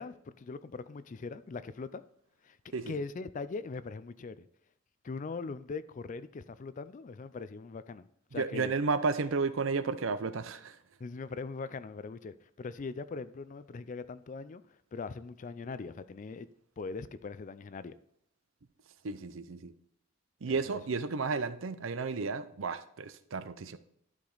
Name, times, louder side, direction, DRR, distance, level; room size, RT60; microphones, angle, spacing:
voice 1, 0.0-2.0 2.4-2.6 2.9-4.5 5.0-8.7 11.0-14.6 14.9-16.5 16.8-17.9 20.5-20.8, left 4 dB, 40° left, 15 dB, 0.4 m, -41 dB
voice 2, 8.3-10.8 19.0-19.7 20.4-23.8, right 4 dB, 75° right, 13 dB, 0.6 m, -32 dB
11.5 x 5.0 x 3.9 m, 0.70 s
head